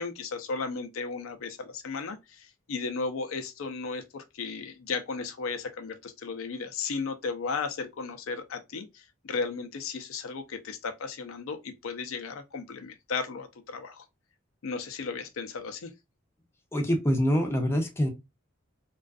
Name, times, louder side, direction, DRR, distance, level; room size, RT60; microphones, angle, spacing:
voice 1, 0.0-14.1 14.6-15.9, left 4 dB, 85° left, 0.5 m, -35 dB
voice 2, 16.7-18.1, equal, 15° left, 0.5 m, -25 dB
2.4 x 2.3 x 2.2 m
head